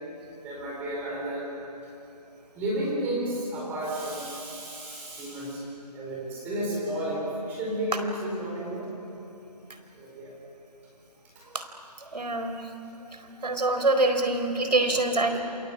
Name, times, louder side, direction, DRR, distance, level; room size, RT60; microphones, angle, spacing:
voice 1, 0.4-1.5 2.5-5.7 5.9-8.9 9.9-10.3 11.3-11.4, right 1 dB, 10° right, -4 dB, 4.4 m, -32 dB
voice 2, 12.1-12.7 13.4-15.4, right 2 dB, 80° right, 7 dB, 4.3 m, -25 dB
28.0 x 23.0 x 8.6 m, 2.8 s
figure-of-eight pair, 165°, 21 cm